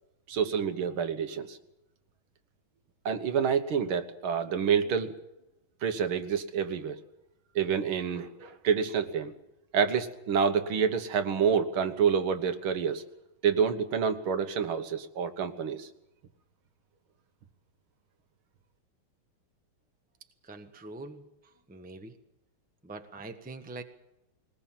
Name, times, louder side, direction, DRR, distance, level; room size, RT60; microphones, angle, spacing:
voice 1, 0.3-1.6 3.1-5.1 5.8-7.0 7.6-9.3 9.7-13.0 13.4-15.9, right 7 dB, 75° right, 8 dB, 2.1 m, -28 dB
voice 2, 20.4-22.2 22.8-23.8, right 2 dB, 5° right, 6 dB, 0.8 m, -44 dB
22.0 x 19.5 x 7.5 m, 0.90 s
omnidirectional pair, 2.4 m